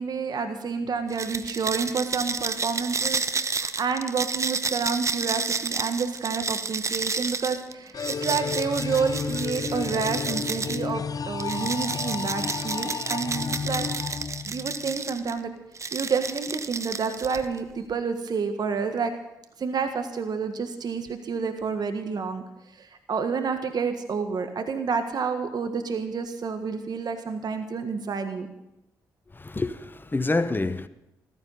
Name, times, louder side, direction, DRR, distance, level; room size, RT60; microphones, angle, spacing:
voice 1, 0.0-14.2 14.5-15.5 15.9-19.1 19.6-22.4 22.8-28.5, right 5 dB, 55° right, 1.5 m, -29 dB
sound 1, 1.1-10.9 11.4-15.3 15.8-17.6, right 4 dB, 35° right, 0.9 m, -31 dB
sound 2, 7.9-14.9, left 6 dB, 45° left, 0.6 m, -32 dB
voice 2, 29.3-30.9, left 2 dB, 25° left, 1.1 m, -27 dB
14.5 x 14.5 x 5.6 m
hypercardioid pair, 40°, 8 cm